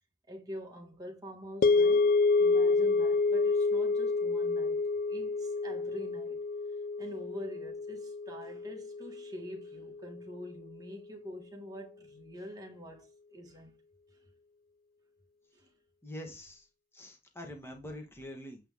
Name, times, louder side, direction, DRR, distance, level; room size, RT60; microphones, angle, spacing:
voice 1, 0.3-2.1 2.4-6.5 7.0-13.8 15.5-15.7, equal, 20° right, 1.7 m, -46 dB
sound 1, 1.6-9.9, left 3 dB, 45° left, 0.3 m, -28 dB
voice 2, 16.0-16.7 16.9-18.6, left 1 dB, 15° left, 1.4 m, -44 dB
8.4 x 3.3 x 3.5 m
head